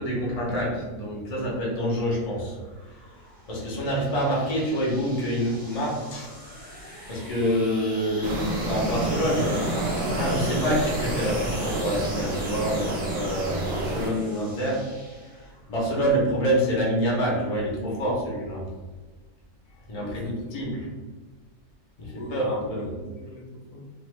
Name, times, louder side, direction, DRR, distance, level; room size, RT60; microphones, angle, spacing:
voice 1, 0.0-2.6 3.5-6.3 7.1-9.7 10.1-18.6 19.9-20.8 22.0-22.9, equal, 45° left, -4 dB, 0.5 m, -27 dB
sound 1, 2.3-15.6, equal, 10° right, 0.6 m, -41 dB
sound 2, 8.2-14.1, right 1 dB, 70° right, 0.6 m, -29 dB
voice 2, 19.9-20.9 22.1-23.9, equal, 65° left, -2 dB, 1.0 m, -42 dB
2.8 x 2.2 x 3.2 m, 1.3 s
omnidirectional pair, 1.7 m